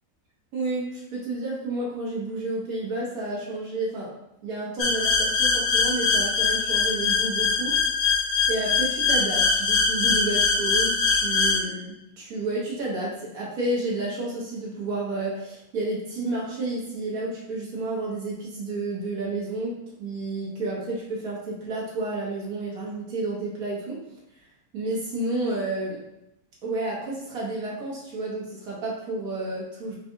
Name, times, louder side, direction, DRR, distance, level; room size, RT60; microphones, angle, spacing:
voice 1, 0.5-4.1 4.4-19.7 20.0-24.0 24.7-26.0 26.6-30.0, right 2 dB, 80° right, -5 dB, 1.4 m, -31 dB
sound 1, 4.8-11.6, left 4 dB, 90° left, 1.4 m, -22 dB
4.0 x 2.6 x 3.7 m, 0.84 s
omnidirectional pair, 1.5 m